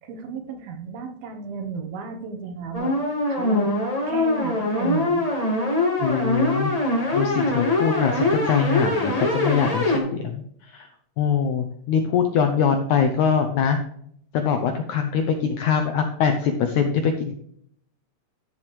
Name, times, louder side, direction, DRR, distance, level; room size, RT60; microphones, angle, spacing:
voice 1, 0.0-2.9 3.3-3.7 4.1-5.3, right 5 dB, 75° right, 6 dB, 2.9 m, -33 dB
sound 1, 2.7-10.0, left 1 dB, 30° left, 0.7 m, -23 dB
voice 2, 6.0-6.7 7.1-10.9 11.2-13.8 14.3-17.3, left 7 dB, 85° left, 6 dB, 1.6 m, -23 dB
11.5 x 7.1 x 3.3 m, 0.68 s
omnidirectional pair, 4.5 m